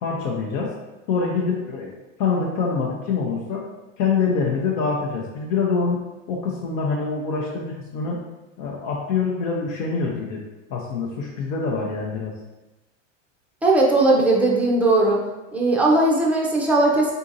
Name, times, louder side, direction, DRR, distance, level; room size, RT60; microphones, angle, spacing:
voice 1, 0.0-0.7 1.1-1.9 2.2-3.7 4.0-8.2 8.6-10.4 10.7-12.3, left 5 dB, 75° left, -3 dB, 0.7 m, -25 dB
voice 2, 13.6-15.2 15.5-17.1, right 2 dB, 5° right, -3 dB, 0.3 m, -18 dB
3.8 x 2.7 x 2.5 m, 1.1 s
supercardioid pair, 115°, 39 cm